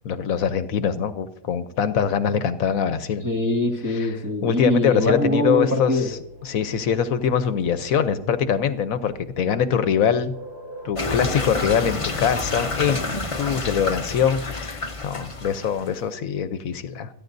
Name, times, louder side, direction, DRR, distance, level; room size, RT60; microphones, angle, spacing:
voice 1, 0.0-3.2 3.9-4.1 4.4-10.3 10.8-17.1, left 7 dB, 75° left, 11 dB, 1.2 m, -23 dB
voice 2, 3.2-6.1, left 1 dB, 15° right, 2 dB, 1.7 m, -23 dB
sound 1, 6.0-12.9, right 1 dB, 45° right, 3.3 m, -45 dB
sound 2, 11.0-15.9, left 3 dB, 25° left, 0.9 m, -28 dB
27.5 x 10.5 x 2.6 m, 0.72 s
omnidirectional pair, 1.5 m